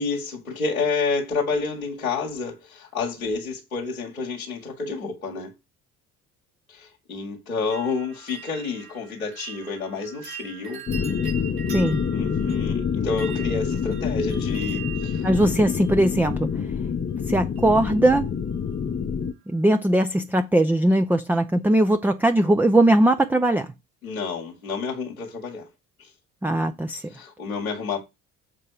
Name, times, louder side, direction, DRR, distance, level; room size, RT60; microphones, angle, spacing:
voice 1, 0.0-5.5 6.7-10.8 12.1-15.3 24.0-25.7 26.0-26.1 27.1-28.0, left 4 dB, 90° left, 1.8 m, -29 dB
sound 1, 7.7-16.6 17.6-18.1 18.3-18.9 19.2-19.3, right 8 dB, 70° right, 4.9 m, -42 dB
sound 2, 10.9-19.3, left 6 dB, 25° left, 0.9 m, -27 dB
voice 2, 11.7-12.0 15.2-16.5 17.3-18.3 19.5-23.7 26.4-27.1, right 1 dB, 5° right, 0.6 m, -20 dB
7.5 x 4.3 x 4.9 m
figure-of-eight pair, 50°, 42 cm